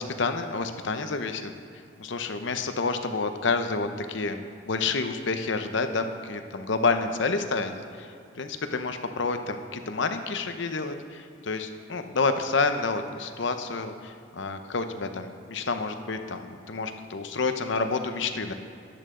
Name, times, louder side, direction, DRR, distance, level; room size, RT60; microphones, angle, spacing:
voice 1, 0.0-1.5 2.0-18.5, left 4 dB, 65° left, 7 dB, 0.7 m, -29 dB
13.5 x 10.5 x 3.8 m, 2.4 s
head